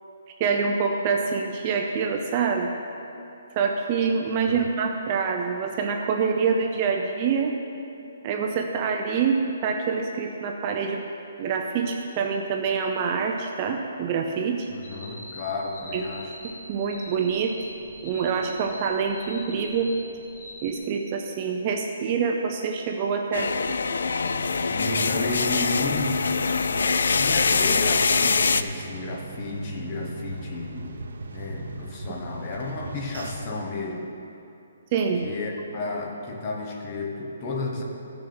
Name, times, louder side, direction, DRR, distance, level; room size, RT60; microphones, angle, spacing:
voice 1, 0.4-2.7 3.6-7.5 8.2-11.0 11.4-14.7 15.9-16.0 16.4-17.6 18.0-19.9 20.6-23.8 34.9-35.3, right 5 dB, 25° right, 3 dB, 0.4 m, -26 dB
voice 2, 14.7-16.3 24.7-26.3 27.1-31.0 31.3-34.1 35.2-37.8, left 2 dB, 25° left, 0 dB, 1.0 m, -32 dB
sound 1, 14.8-20.8, left 1 dB, 40° left, 2.1 m, -43 dB
sound 2, 23.3-28.6, left 4 dB, 75° left, 0.4 m, -23 dB
sound 3, 24.3-33.5, right 2 dB, 80° right, 0.7 m, -38 dB
14.5 x 6.4 x 4.3 m, 2.7 s
hypercardioid pair, 175°, 0 cm